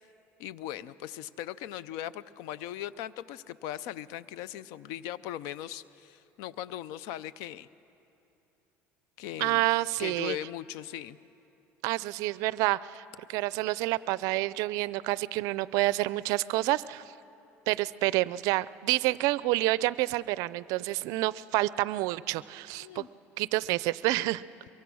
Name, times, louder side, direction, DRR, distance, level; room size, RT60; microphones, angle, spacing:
voice 1, 0.4-7.7 9.2-9.7 10.0-11.2 22.8-23.1, left 12 dB, 80° left, 18 dB, 0.5 m, -39 dB
voice 2, 9.4-10.4 11.8-13.0 13.3-17.0 17.7-23.1 23.4-24.4, right 18 dB, 75° right, 18 dB, 0.4 m, -28 dB
23.0 x 23.0 x 6.2 m, 3.0 s
cardioid pair, 120°, 6 cm